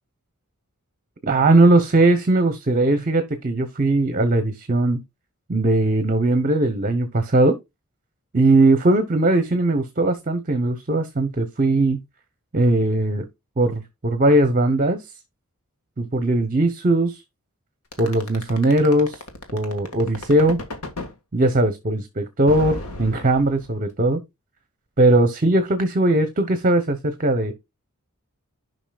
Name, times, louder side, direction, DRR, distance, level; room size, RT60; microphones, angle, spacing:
voice 1, 1.3-5.0 5.5-7.6 8.3-12.0 12.5-13.3 13.6-15.0 16.0-17.2 18.0-19.2 19.5-20.6 21.3-24.2 25.0-27.5, right 2 dB, 40° right, 0.9 m, -19 dB
sound 1, 17.9-21.1 22.5-23.9, left 2 dB, 85° left, 1.8 m, -33 dB
11.0 x 5.4 x 2.3 m
head